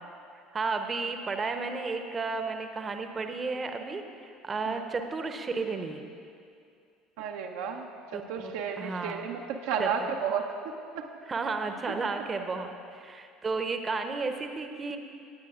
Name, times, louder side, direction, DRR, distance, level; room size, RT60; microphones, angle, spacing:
voice 1, 0.5-6.1 8.1-9.2 9.8-10.0 11.2-15.0, right 4 dB, 25° right, 6 dB, 0.8 m, -33 dB
voice 2, 7.2-7.9 8.1-11.1, right 6 dB, 65° right, 2 dB, 0.6 m, -33 dB
18.5 x 8.9 x 2.4 m, 2.4 s
figure-of-eight pair, 65°, 0 cm